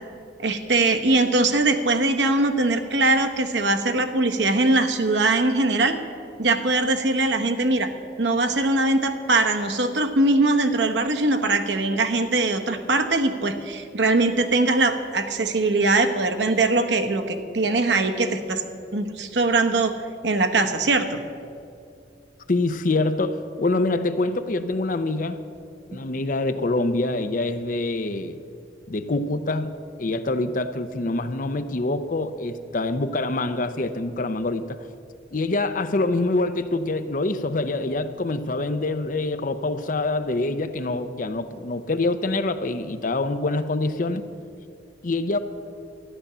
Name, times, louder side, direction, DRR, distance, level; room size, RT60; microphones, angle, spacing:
voice 1, 0.4-6.0 6.4-7.9 8.2-18.6 18.9-20.0 20.2-21.2, right 2 dB, 75° right, 7 dB, 1.0 m, -21 dB
voice 2, 22.5-25.4 25.9-28.4 28.9-29.7 30.0-34.8 35.3-44.2 45.0-45.4, left 2 dB, 45° left, 10 dB, 0.6 m, -25 dB
13.0 x 10.0 x 6.8 m, 2.4 s
head